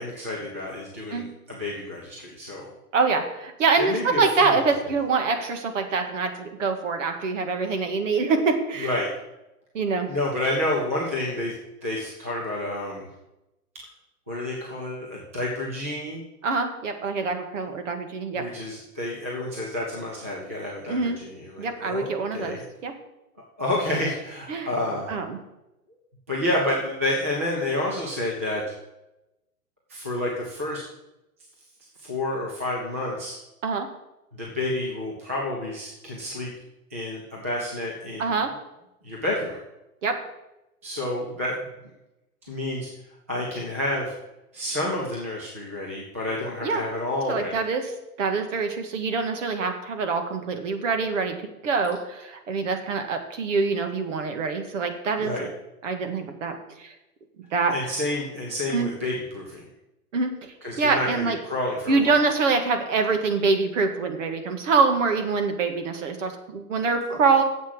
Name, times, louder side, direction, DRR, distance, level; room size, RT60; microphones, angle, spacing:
voice 1, 0.0-2.7 3.8-4.6 8.8-9.1 10.0-11.5 11.8-13.1 14.3-16.2 18.3-22.6 23.6-25.1 26.3-28.6 29.9-30.8 32.0-33.4 34.3-36.5 36.9-38.3 39.0-39.6 40.8-41.7 42.5-42.9 43.3-44.1 44.5-47.6 55.2-55.4 57.7-59.6 60.6-62.2, left 1 dB, 10° right, -4 dB, 0.4 m, -29 dB
voice 2, 2.9-8.9 9.7-10.1 16.4-18.5 20.9-21.2 21.6-22.6 22.8-22.9 24.5-24.7 25.1-25.4 33.6-33.9 38.2-38.5 40.0-40.2 46.6-46.8 47.3-47.9 48.2-51.4 51.6-55.5 55.8-56.9 57.5-57.8 58.7-58.9 60.1-61.4 61.9-67.4, right 4 dB, 50° right, 6 dB, 1.9 m, -25 dB
9.8 x 7.5 x 7.6 m, 0.94 s
hypercardioid pair, 170°, 46 cm